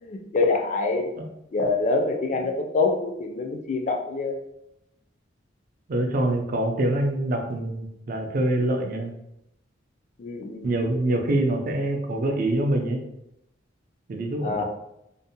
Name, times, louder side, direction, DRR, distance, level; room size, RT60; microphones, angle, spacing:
voice 1, 0.0-1.1 1.5-4.4 10.2-10.7 14.4-14.6, left 3 dB, 40° left, 3 dB, 0.3 m, -25 dB
voice 2, 5.9-9.1 10.6-13.0 14.1-14.6, right 1 dB, 45° right, 3 dB, 0.4 m, -25 dB
2.6 x 2.0 x 2.7 m, 0.83 s
head